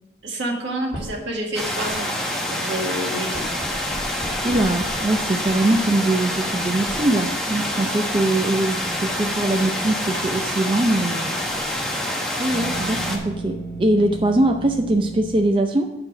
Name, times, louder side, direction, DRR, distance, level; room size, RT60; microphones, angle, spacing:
voice 1, 0.2-2.1 2.5-3.5 10.1-10.2, right 1 dB, 85° right, 1 dB, 1.7 m, -28 dB
sound 1, 0.9-1.3 1.6-2.2 3.0-11.8 12.5-15.4, right 2 dB, 25° left, 2.5 m, -37 dB
sound 2, 1.5-13.2, left 1 dB, 5° left, 1.0 m, -26 dB
voice 2, 4.4-11.4 12.4-15.9, right 1 dB, 25° right, 4 dB, 0.5 m, -22 dB
6.8 x 5.8 x 5.9 m, 0.96 s
head